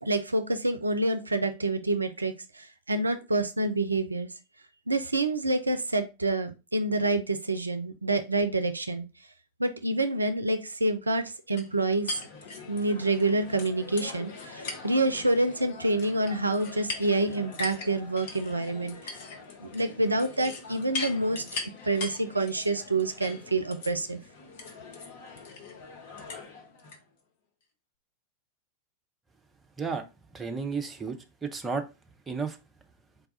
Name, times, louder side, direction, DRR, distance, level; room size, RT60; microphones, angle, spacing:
voice 1, 0.0-4.3 4.9-9.1 9.6-12.2 12.7-19.0 19.6-21.4 21.8-24.2, right 2 dB, 80° right, 9 dB, 0.4 m, -27 dB
sound 1, 11.6-27.0, left 4 dB, 50° left, 0.8 m, -41 dB
voice 2, 30.3-31.9 32.3-32.6, right 5 dB, 15° right, 5 dB, 0.5 m, -32 dB
4.0 x 2.3 x 3.7 m, 0.27 s
figure-of-eight pair, 90°, 0 cm